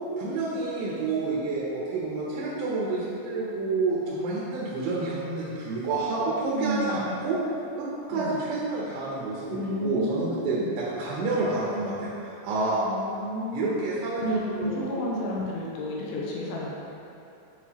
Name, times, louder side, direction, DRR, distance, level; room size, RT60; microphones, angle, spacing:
voice 1, 0.2-7.4 7.8-12.8 13.5-14.9, right 3 dB, 80° right, -7 dB, 2.9 m, -29 dB
voice 2, 6.6-7.1 8.1-8.4 9.5-10.8 12.8-13.7 14.2-16.8, equal, 80° left, -4 dB, 2.5 m, -32 dB
9.1 x 4.4 x 2.9 m, 2.7 s
omnidirectional pair, 5.1 m